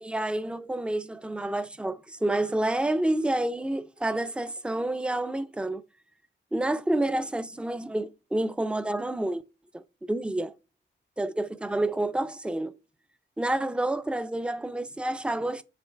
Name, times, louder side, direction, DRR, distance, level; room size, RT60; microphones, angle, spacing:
voice 1, 0.0-5.8 6.5-9.4 9.7-9.8 10.1-10.5 11.2-12.8 13.4-15.6, right 1 dB, 5° right, 0.3 m, -29 dB
7.5 x 3.2 x 4.4 m
wide cardioid pair, 140°, 20 cm